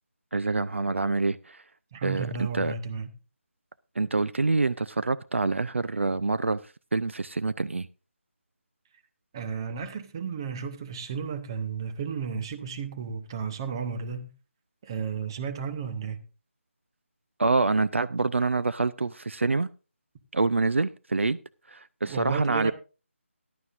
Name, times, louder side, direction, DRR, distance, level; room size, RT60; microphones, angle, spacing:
voice 1, 0.3-1.6 2.0-2.7 4.0-6.6 6.9-7.9 17.4-19.7 20.3-21.4 21.7-22.7, right 3 dB, 60° right, 0.5 m, -26 dB
voice 2, 1.9-3.1 9.3-14.3 14.8-16.2 22.0-22.7, right 6 dB, 20° right, 0.7 m, -33 dB
16.0 x 11.5 x 2.5 m
figure-of-eight pair, 155°, 7 cm